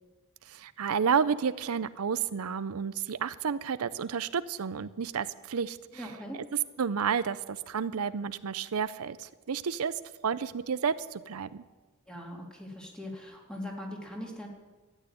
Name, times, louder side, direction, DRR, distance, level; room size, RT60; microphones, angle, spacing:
voice 1, 0.5-6.1 6.3-6.4 6.8-9.9 10.2-11.6, right 6 dB, 85° right, 14 dB, 0.5 m, -31 dB
voice 2, 5.9-6.4 12.1-14.5, left 1 dB, 5° left, 0 dB, 2.6 m, -40 dB
13.5 x 9.2 x 9.8 m, 1.3 s
head